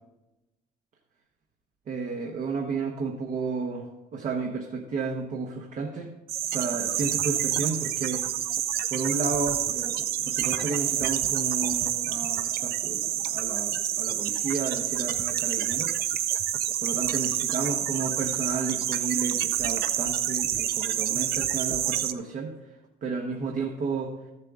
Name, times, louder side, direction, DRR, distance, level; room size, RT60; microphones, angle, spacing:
voice 1, 1.9-3.9 4.1-6.1 6.4-8.2 8.9-15.9 16.8-22.5 23.0-24.1, right 4 dB, 50° right, 2 dB, 1.0 m, -32 dB
sound 1, 6.3-22.1, right 11 dB, 65° right, 0.5 m, -28 dB
13.0 x 7.5 x 3.6 m, 1.0 s
cardioid pair, 110°, 17 cm